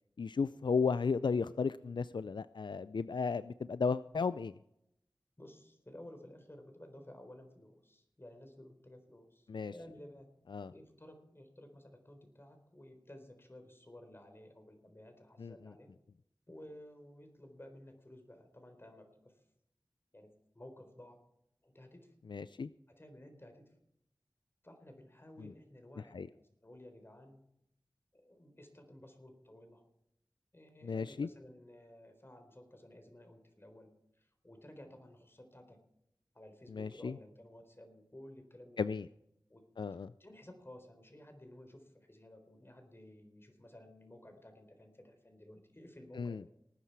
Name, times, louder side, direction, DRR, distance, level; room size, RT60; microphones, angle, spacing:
voice 1, 0.2-4.5 9.5-9.7 10.5-10.7 15.4-15.5 22.3-22.7 26.1-26.3 30.8-31.3 36.7-37.1 38.8-39.0 39.8-40.1 46.2-46.4, left 5 dB, 75° left, 15 dB, 0.4 m, -34 dB
voice 2, 5.4-10.3 10.7-15.9 16.5-19.4 20.1-21.2 21.6-22.2 22.9-23.7 24.6-27.4 28.1-29.8 30.5-35.9 36.3-39.0 39.5-46.5, left 1 dB, 30° left, 6 dB, 4.0 m, -55 dB
19.0 x 10.0 x 4.7 m, 0.77 s
wide cardioid pair, 45°, 8 cm